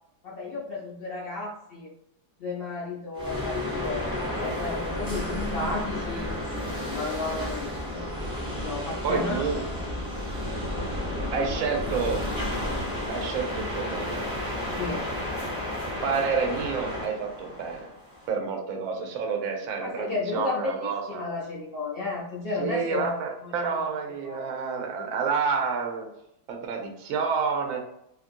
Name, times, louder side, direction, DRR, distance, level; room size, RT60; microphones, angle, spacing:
voice 1, 0.2-1.9 2.4-4.1 4.4-6.3 6.9-8.0 8.6-9.4 14.7-15.1 19.8-23.1 23.4-23.7 24.2-24.5, left 3 dB, 65° left, -5 dB, 0.5 m, -33 dB
sound 1, 3.1-18.3, left 1 dB, 5° right, 0.5 m, -32 dB
voice 2, 9.0-9.6 11.3-12.2 13.1-14.2 16.0-17.8 18.3-21.3 22.6-26.1 26.5-27.8, right 5 dB, 65° right, 3 dB, 0.9 m, -29 dB
2.8 x 2.5 x 2.5 m, 0.77 s
omnidirectional pair, 1.8 m